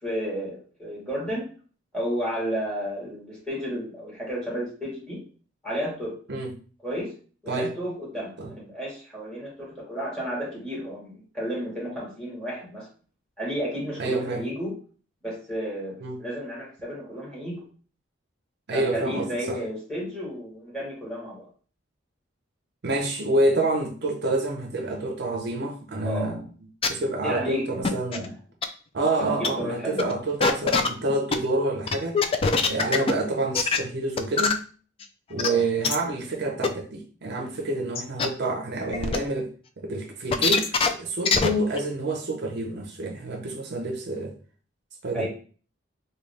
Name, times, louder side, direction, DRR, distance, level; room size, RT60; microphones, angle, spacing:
voice 1, 0.0-1.5 1.9-5.2 5.6-6.2 6.8-7.1 7.4-12.9 13.4-14.8 15.2-17.7 18.7-21.5 26.0-26.5 27.2-28.3 29.2-30.1 35.4-35.9 45.1-45.3, equal, 5° left, 1.6 m, -32 dB
voice 2, 14.0-14.4 16.0-16.2 18.7-19.6 22.8-26.4 26.9-28.3 28.9-32.2 32.6-34.6 35.3-39.5 39.8-40.7 41.0-44.3 45.0-45.3, right 2 dB, 60° right, 0.6 m, -28 dB
sound 1, 26.8-26.9 27.8-28.3 28.6-28.7 29.1-29.2 29.4-29.5 30.0-30.1 30.4-31.4 31.9-33.1 33.5-33.8 34.2-34.5 35.0-35.1 35.4-35.5 35.8-35.9 36.6-36.7 37.4-37.5 37.9-38.3 38.9-39.2 40.3-40.9 41.2-41.5 41.8-41.9, left 4 dB, 30° left, 0.3 m, -22 dB
3.7 x 2.3 x 3.2 m
head